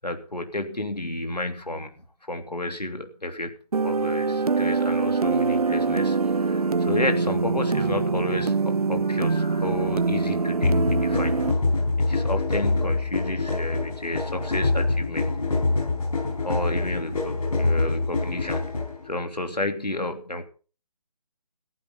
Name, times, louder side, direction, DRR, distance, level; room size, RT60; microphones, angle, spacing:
voice 1, 0.0-1.9 2.3-3.6 3.8-11.3 12.1-15.3 16.4-18.7 19.0-20.5, left 1 dB, 85° left, 6 dB, 3.1 m, -31 dB
sound 1, 3.7-11.5, right 4 dB, 65° right, 0.8 m, -24 dB
sound 2, 10.6-19.1, left 3 dB, 65° left, 7.7 m, -25 dB
14.5 x 11.5 x 5.7 m, 0.37 s
figure-of-eight pair, 150°, 20 cm